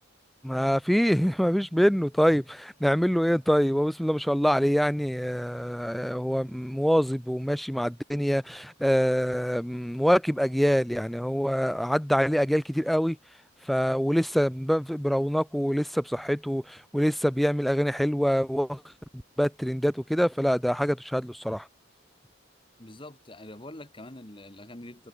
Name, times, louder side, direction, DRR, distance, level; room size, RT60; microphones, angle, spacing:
voice 1, 0.4-13.2 13.7-18.8 19.4-21.7, equal, ahead, 0.3 m, -25 dB
voice 2, 22.8-25.1, left 1 dB, 25° left, 2.1 m, -44 dB
head